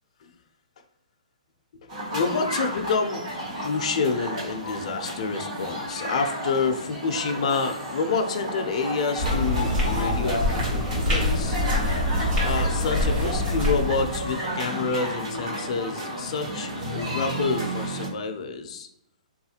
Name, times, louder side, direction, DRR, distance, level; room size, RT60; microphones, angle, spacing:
sound 1, 1.9-18.1, right 1 dB, 55° right, 1.2 m, -32 dB
voice 1, 2.1-3.2 3.6-11.6 12.4-18.9, left 4 dB, 50° left, 5 dB, 0.4 m, -28 dB
sound 2, 9.2-14.3, left 1 dB, 25° right, 1.0 m, -25 dB
3.5 x 2.4 x 2.8 m, 0.77 s
hypercardioid pair, 165°, 4 cm